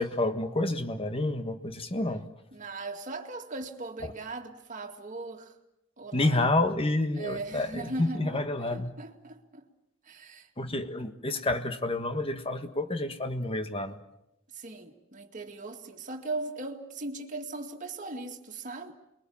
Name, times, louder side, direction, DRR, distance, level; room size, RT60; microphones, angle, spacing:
voice 1, 0.0-2.3 4.0-4.1 6.1-8.9 10.6-14.0, left 2 dB, 25° left, 1.5 m, -29 dB
voice 2, 2.5-5.5 6.0-6.5 7.2-9.7 10.0-10.5 14.5-18.9, right 2 dB, 40° right, 2.2 m, -39 dB
28.5 x 22.5 x 7.2 m
head